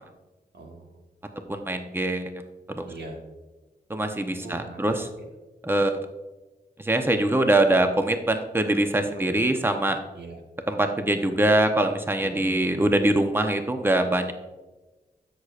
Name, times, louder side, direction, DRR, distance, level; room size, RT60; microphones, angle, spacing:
voice 1, 0.5-0.9 2.9-3.2 4.4-4.9 9.1-9.4 10.2-10.4 12.2-12.6, right 3 dB, 85° right, 1 dB, 1.4 m, -41 dB
voice 2, 1.5-2.3 2.7-2.9 3.9-5.1 5.6-5.9 6.8-10.0 10.7-14.3, right 1 dB, 15° right, 6 dB, 0.8 m, -23 dB
13.0 x 6.5 x 2.5 m, 1.2 s
cardioid pair, 55°, 17 cm